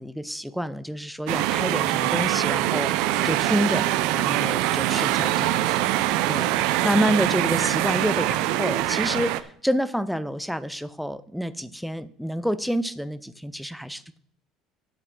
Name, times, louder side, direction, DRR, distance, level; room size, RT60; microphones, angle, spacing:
voice 1, 0.0-3.9 4.1-5.9 6.3-14.0, equal, ahead, 15 dB, 0.4 m, -28 dB
sound 1, 1.3-9.4, right 15 dB, 65° right, 0.6 m, -23 dB
8.2 x 7.8 x 6.0 m, 0.64 s
cardioid pair, 165°, 0 cm